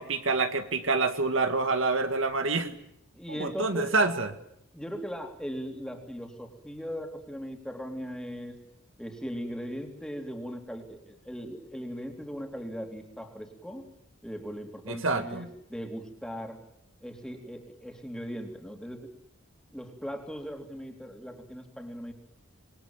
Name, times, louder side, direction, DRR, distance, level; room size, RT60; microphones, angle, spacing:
voice 1, 0.0-2.7 3.4-4.3 14.9-15.5, right 3 dB, 65° right, 7 dB, 2.0 m, -27 dB
voice 2, 3.1-4.0 4.7-8.6 9.0-13.9 14.2-16.6 17.0-19.1 19.7-22.1, equal, 5° left, 3 dB, 3.4 m, -39 dB
27.0 x 22.0 x 9.1 m, 0.73 s
head